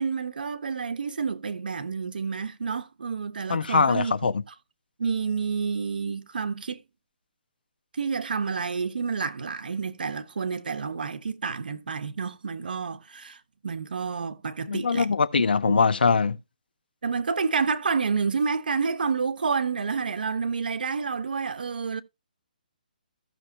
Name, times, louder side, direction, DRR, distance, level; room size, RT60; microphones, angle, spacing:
voice 1, 0.0-4.3 5.0-6.8 7.9-15.1 15.7-15.8 17.0-22.0, right 5 dB, 65° right, 1.2 m, -29 dB
voice 2, 3.5-4.3 14.7-16.4, left 5 dB, 85° left, 1.1 m, -22 dB
15.0 x 6.2 x 2.9 m
hypercardioid pair, 180°, 5 cm